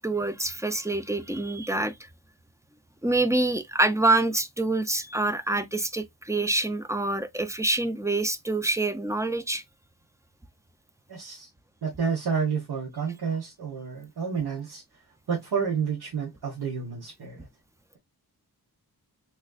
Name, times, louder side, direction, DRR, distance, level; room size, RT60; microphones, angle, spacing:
voice 1, 0.0-1.9 3.0-9.6, right 2 dB, 10° right, 0.4 m, -26 dB
voice 2, 11.1-11.5 11.8-14.8 15.3-17.5, right 6 dB, 80° right, 1.3 m, -30 dB
3.7 x 3.1 x 2.3 m
wide cardioid pair, 110°, 38 cm